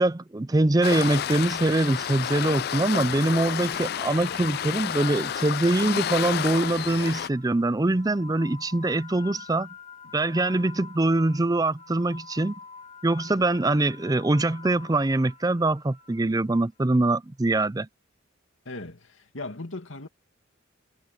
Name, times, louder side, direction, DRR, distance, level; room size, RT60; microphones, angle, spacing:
voice 1, 0.0-9.7 10.1-12.6 13.0-17.9, right 2 dB, 20° right, 0.5 m, -23 dB
Waves surf, 0.8-7.3, left 9 dB, 50° left, 0.3 m, -30 dB
sound 1, 1.9-17.0, left 5 dB, 35° left, 4.0 m, -46 dB
voice 2, 18.6-20.1, left 2 dB, 75° left, 2.4 m, -38 dB
head